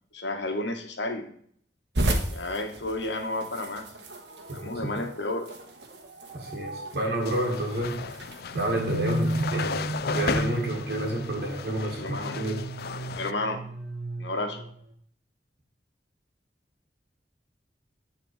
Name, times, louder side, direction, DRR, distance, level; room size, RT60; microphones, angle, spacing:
voice 1, 0.1-1.3 2.3-3.8 4.5-5.5 11.8-12.4 13.1-13.6 14.2-14.6, left 2 dB, 85° left, 5 dB, 1.5 m, -31 dB
sound 1, 1.9-9.5, right 1 dB, 75° right, 1.4 m, -35 dB
voice 2, 4.5-4.9 6.3-8.0 8.5-12.6, right 1 dB, 60° right, -2 dB, 1.9 m, -30 dB
sound 2, 7.2-13.3, left 5 dB, 60° left, 0.4 m, -35 dB
sound 3, 8.5-14.8, right 1 dB, 90° right, 1.7 m, -33 dB
9.4 x 4.2 x 4.9 m, 0.63 s
head